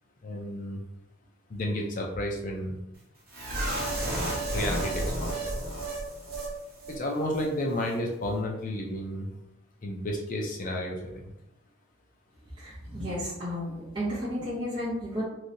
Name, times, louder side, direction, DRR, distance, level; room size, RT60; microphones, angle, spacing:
voice 1, 0.2-0.8 1.5-2.8 4.5-5.4 6.9-9.3 9.8-11.2, left 1 dB, 40° left, 0 dB, 0.5 m, -32 dB
sound 1, 3.3-6.5 6.8-7.0 7.3-7.4, right 1 dB, 45° right, 1.2 m, -31 dB
voice 2, 12.4-15.2, equal, 25° right, -8 dB, 0.7 m, -33 dB
3.2 x 2.6 x 2.6 m, 0.87 s
head